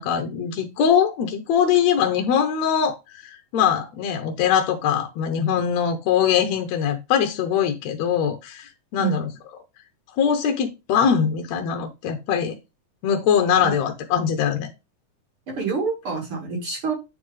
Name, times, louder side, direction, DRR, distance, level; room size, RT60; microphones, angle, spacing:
voice 1, 0.0-9.3 10.2-12.6 13.0-14.7, left 8 dB, 70° left, 1.8 m, -22 dB
voice 2, 15.5-16.9, right 5 dB, 45° right, 2.3 m, -27 dB
9.3 x 4.3 x 3.2 m
omnidirectional pair, 3.9 m